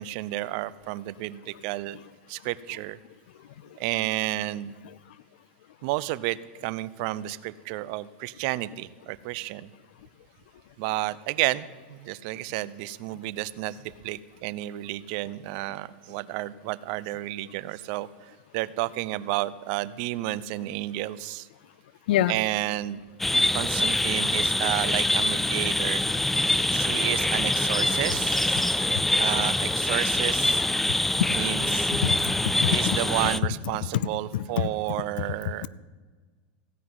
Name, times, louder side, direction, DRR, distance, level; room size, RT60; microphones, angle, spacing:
voice 1, 0.0-2.0 2.3-3.0 3.8-4.7 5.8-6.4 6.6-9.7 10.8-18.1 18.5-21.5 22.3-23.0 23.5-26.0 26.7-28.8 29.2-30.6 31.3-31.9 32.7-35.7, right 16 dB, 60° right, 18 dB, 0.6 m, -31 dB
sound 1, 23.2-33.4, left 1 dB, 5° left, 0.4 m, -25 dB
voice 2, 32.0-33.0 33.9-34.1 34.3-34.7, left 12 dB, 80° left, 19 dB, 0.5 m, -25 dB
16.0 x 5.8 x 9.5 m, 1.4 s
supercardioid pair, 120°, 5 cm